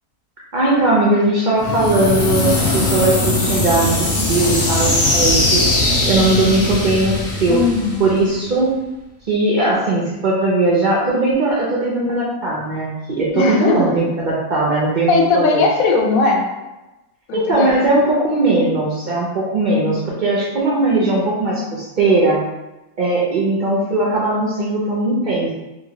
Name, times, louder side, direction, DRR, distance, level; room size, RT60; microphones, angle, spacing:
voice 1, 0.5-5.7 6.1-7.6 8.0-8.7 9.3-15.6 17.3-22.4 23.0-25.5, right 2 dB, 75° right, -5 dB, 0.4 m, -18 dB
sound 1, 1.6-8.5, left 2 dB, 55° left, 0.5 m, -19 dB
voice 2, 7.5-8.2 13.3-13.8 15.1-16.4 17.3-17.8 20.8-20.9, left 4 dB, 70° left, 0 dB, 1.0 m, -18 dB
3.0 x 2.5 x 2.8 m, 1.0 s
omnidirectional pair, 1.6 m